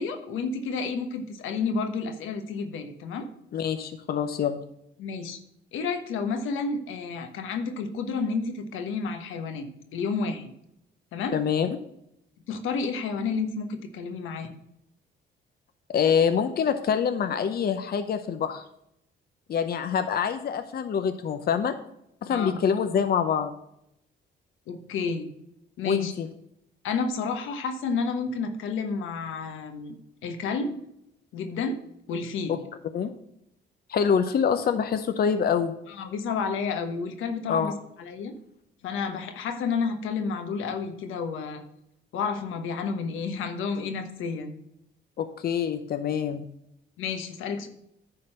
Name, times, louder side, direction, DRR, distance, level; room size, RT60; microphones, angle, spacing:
voice 1, 0.0-3.3 5.0-5.4 5.7-10.5 11.1-11.4 12.5-14.5 22.3-22.6 24.7-25.3 25.8-26.1 26.8-30.0 30.2-30.8 31.3-31.8 32.1-32.6 35.9-38.3 38.8-41.6 42.1-44.6 47.0-47.7, left 5 dB, 85° left, 7 dB, 1.2 m, -30 dB
voice 2, 3.5-4.6 11.3-11.7 15.9-18.6 19.5-21.7 22.2-23.5 25.8-26.3 32.9-33.1 33.9-35.7 37.5-37.7 45.2-46.4, left 7 dB, 50° left, 9 dB, 0.7 m, -25 dB
10.0 x 3.9 x 6.5 m, 0.78 s
cardioid pair, 90°, 20 cm